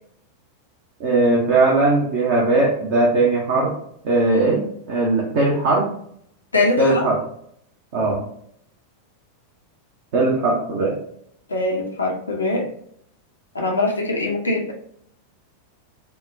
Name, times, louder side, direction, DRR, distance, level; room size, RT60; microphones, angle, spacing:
voice 1, 1.0-3.7 4.0-5.9 6.8-7.2 7.9-8.2 10.1-11.0, right 2 dB, 50° right, -3 dB, 0.7 m, -19 dB
voice 2, 6.5-7.1 11.5-12.7 13.5-14.7, left 2 dB, 75° left, 0 dB, 0.5 m, -22 dB
3.7 x 2.2 x 2.5 m, 0.69 s
figure-of-eight pair, 90°, 0 cm